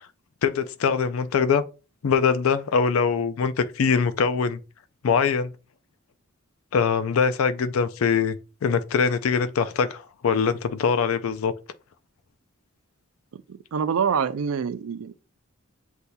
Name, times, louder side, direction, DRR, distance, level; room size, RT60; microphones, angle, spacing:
voice 1, 0.4-1.7 2.0-4.6 5.0-5.5 6.7-8.4 8.6-11.5, left 6 dB, 75° left, 0.4 m, -23 dB
voice 2, 13.3-15.1, right 6 dB, 75° right, 0.4 m, -26 dB
7.9 x 2.7 x 2.2 m
head